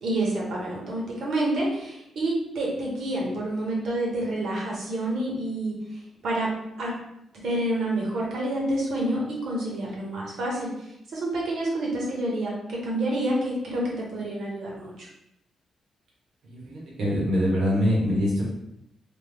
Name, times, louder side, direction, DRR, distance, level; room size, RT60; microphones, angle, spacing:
voice 1, 0.0-5.8 6.2-6.5 6.8-6.9 7.4-15.1, right 1 dB, 60° right, -3 dB, 1.0 m, -28 dB
voice 2, 16.4-18.4, equal, 75° right, -5 dB, 1.2 m, -24 dB
3.4 x 2.1 x 3.4 m, 0.82 s
wide cardioid pair, 160°, 0 cm